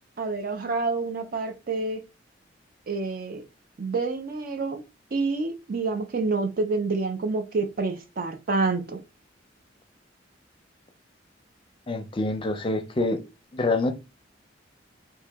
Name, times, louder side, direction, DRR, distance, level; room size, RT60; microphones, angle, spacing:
voice 1, 0.2-2.0 2.9-3.4 3.8-4.8 5.1-9.0, right 3 dB, 50° right, 0.5 m, -28 dB
voice 2, 11.9-13.2 13.5-13.9, left 2 dB, 30° left, 0.5 m, -26 dB
2.9 x 2.7 x 3.4 m
head